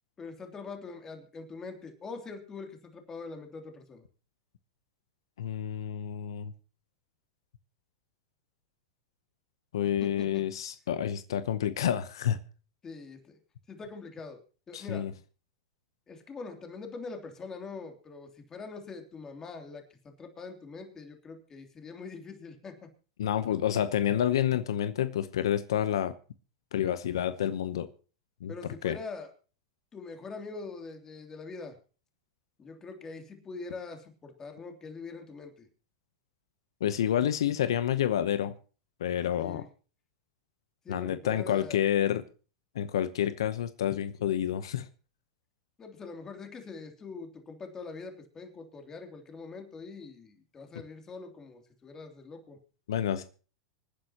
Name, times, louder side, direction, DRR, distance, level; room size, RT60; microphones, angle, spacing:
voice 1, 0.2-4.0 9.8-10.4 12.8-13.4 13.7-15.1 16.1-22.9 28.5-29.3 29.9-31.8 32.6-35.7 39.4-39.7 40.8-41.8 45.8-52.6, left 4 dB, 20° left, 4 dB, 3.0 m, -43 dB
voice 2, 5.4-6.5 9.7-12.4 14.7-15.1 23.2-26.1 26.7-27.9 28.4-28.5 28.8-29.0 36.8-38.5 39.0-39.6 40.9-42.2 42.7-44.9 52.9-53.2, left 10 dB, 85° left, 12 dB, 0.8 m, -29 dB
25.5 x 9.9 x 2.9 m, 0.36 s
hypercardioid pair, 120°, 2 cm